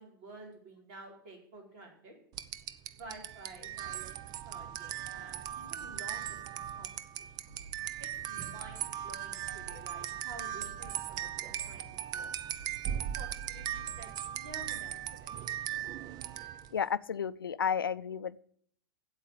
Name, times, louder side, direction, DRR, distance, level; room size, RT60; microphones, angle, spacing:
voice 1, 0.0-2.1 2.9-4.2 4.4-7.3 8.0-11.8 12.1-12.3 12.9-15.4, right 2 dB, 50° right, 0 dB, 4.8 m, -51 dB
sound 1, 2.3-16.8, right 11 dB, 35° right, 0.7 m, -39 dB
sound 2, 7.5-7.9 8.5-8.9 9.5-9.9 10.5-10.9 11.4-11.9 12.5-12.9 13.5-13.9 14.5-14.9, right 3 dB, 70° right, 3.8 m, -52 dB
voice 2, 16.7-18.4, left 7 dB, 80° left, 16 dB, 0.5 m, -32 dB
8.3 x 8.2 x 8.4 m, 0.63 s
figure-of-eight pair, 100°, 12 cm